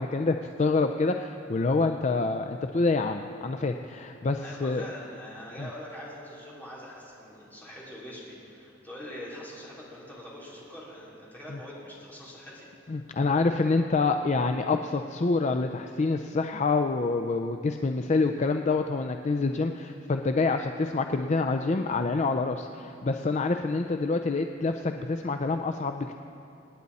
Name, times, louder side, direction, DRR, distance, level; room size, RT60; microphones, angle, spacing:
voice 1, 0.0-4.8 5.6-5.7 12.9-26.2, left 3 dB, 40° left, 6 dB, 0.5 m, -27 dB
voice 2, 4.4-12.7, equal, 10° left, -7 dB, 3.6 m, -43 dB
27.5 x 9.6 x 4.1 m, 2.7 s
head